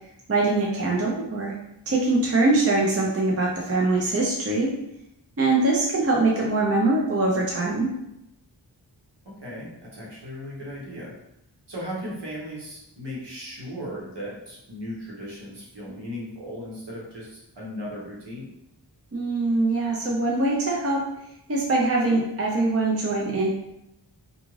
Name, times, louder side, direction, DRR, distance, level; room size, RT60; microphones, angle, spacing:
voice 1, 0.3-1.5 1.9-4.7 5.4-7.9 19.1-21.0 21.5-23.5, right 2 dB, 35° right, -2 dB, 0.6 m, -23 dB
voice 2, 9.4-11.1 11.7-18.5, equal, 65° right, -5 dB, 1.1 m, -36 dB
2.4 x 2.4 x 3.1 m, 0.83 s
wide cardioid pair, 50°, 45 cm